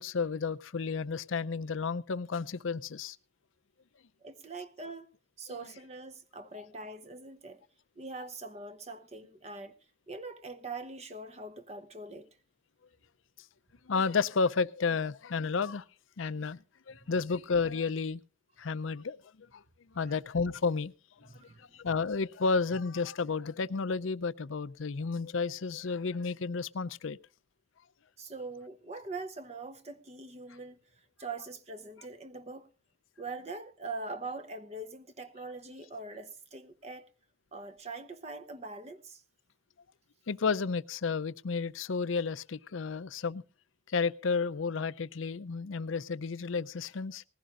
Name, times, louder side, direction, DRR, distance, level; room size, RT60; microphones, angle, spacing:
voice 1, 0.0-3.2 6.5-6.6 13.9-15.8 16.2-18.2 18.6-19.2 19.5-19.6 19.9-20.9 21.2-21.3 21.6-27.2 40.3-43.4 43.9-47.2, left 4 dB, 80° left, 0.5 m, -32 dB
voice 2, 4.2-5.1 5.4-7.6 8.0-9.8 10.1-12.3 17.0-17.1 20.1-20.2 21.3-21.6 28.2-32.7 33.2-37.1 37.5-39.2, right 3 dB, 30° right, 0.8 m, -43 dB
19.5 x 15.5 x 2.5 m
head